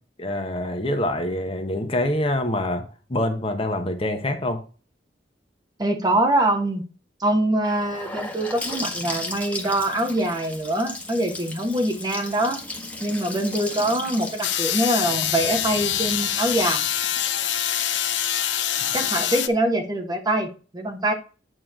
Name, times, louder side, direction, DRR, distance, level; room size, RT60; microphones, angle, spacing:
voice 1, 0.2-4.6, left 1 dB, 30° left, 5 dB, 1.0 m, -25 dB
voice 2, 5.8-6.8 7.2-12.6 13.0-16.8 18.9-20.5 20.7-21.1, right 1 dB, 20° right, 2 dB, 1.3 m, -24 dB
Gurgling / Sink (filling or washing) / Bathtub (filling or washing), 7.6-17.5, left 2 dB, 10° left, 1.4 m, -36 dB
sound 1, 14.4-19.5, left 10 dB, 75° left, 0.6 m, -25 dB
9.1 x 3.2 x 6.2 m, 0.35 s
head